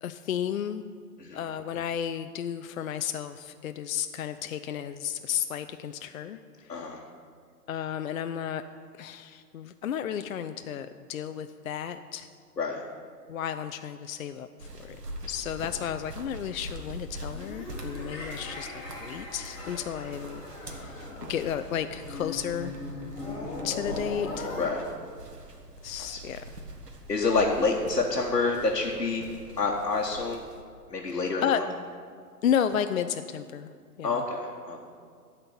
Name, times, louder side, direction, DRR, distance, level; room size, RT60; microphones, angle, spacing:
voice 1, 0.0-0.9 1.3-7.0 7.7-8.6 9.0-12.3 13.3-15.0 15.3-18.7 19.0-22.7 23.6-24.5 25.8-26.4 31.1-31.6 32.4-33.7 34.0-34.2, left 9 dB, 60° left, 9 dB, 0.5 m, -33 dB
sound 1, 14.6-30.6, right 1 dB, 75° right, 1.5 m, -43 dB
sound 2, 17.3-24.7, left 2 dB, 10° left, 1.9 m, -39 dB
voice 2, 27.1-29.3 29.6-30.4 30.9-31.4 34.0-34.8, left 3 dB, 80° left, -2 dB, 1.2 m, -27 dB
12.0 x 4.4 x 8.3 m, 2.2 s
figure-of-eight pair, 120°, 48 cm